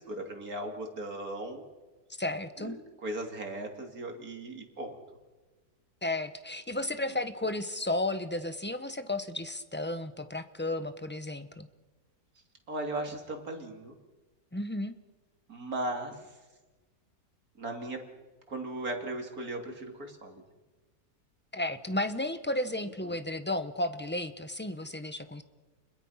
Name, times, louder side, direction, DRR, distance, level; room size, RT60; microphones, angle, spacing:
voice 1, 0.0-1.6 2.6-5.0 12.7-13.9 15.5-16.4 17.6-18.1 18.5-20.4 22.8-23.2, right 1 dB, 65° right, 3 dB, 3.3 m, -37 dB
voice 2, 2.2-2.8 6.0-11.7 14.5-14.9 21.5-25.4, left 1 dB, 10° left, 10 dB, 0.9 m, -33 dB
30.0 x 21.5 x 5.8 m, 1.3 s
omnidirectional pair, 1.7 m